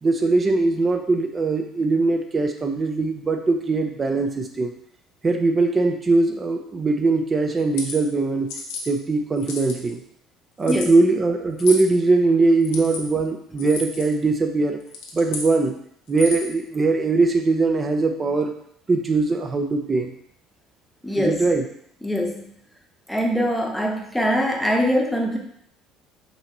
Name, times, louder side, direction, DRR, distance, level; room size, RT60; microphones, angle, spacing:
voice 1, 0.0-4.7 5.2-8.5 8.9-10.0 10.6-14.8 15.1-15.8 16.1-18.5 18.9-20.1 21.2-21.6, right 3 dB, 30° right, 4 dB, 0.6 m, -21 dB
sound 1, 7.6-8.0 8.5-8.8 9.4-9.9 10.6-10.9 11.6-11.9 12.6-13.0 13.6-14.1 14.8-15.5 16.1-16.5, left 4 dB, 90° left, 0.9 m, -32 dB
voice 2, 21.0-21.5 22.0-22.5 23.1-25.4, equal, 5° left, 1 dB, 0.9 m, -23 dB
5.5 x 2.9 x 2.9 m, 0.66 s
supercardioid pair, 95°, 0 cm